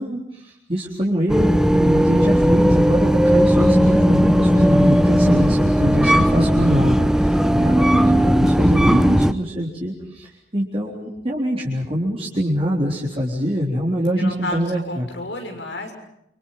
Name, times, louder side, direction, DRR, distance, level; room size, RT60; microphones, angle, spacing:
voice 1, 0.0-15.1, equal, 30° right, -4 dB, 4.0 m, -24 dB
sound 1, 1.3-9.3, equal, 5° right, 0.8 m, -16 dB
voice 2, 7.3-7.9 14.2-15.9, left 2 dB, 80° left, 4 dB, 6.6 m, -32 dB
29.0 x 26.0 x 5.7 m, 0.80 s
head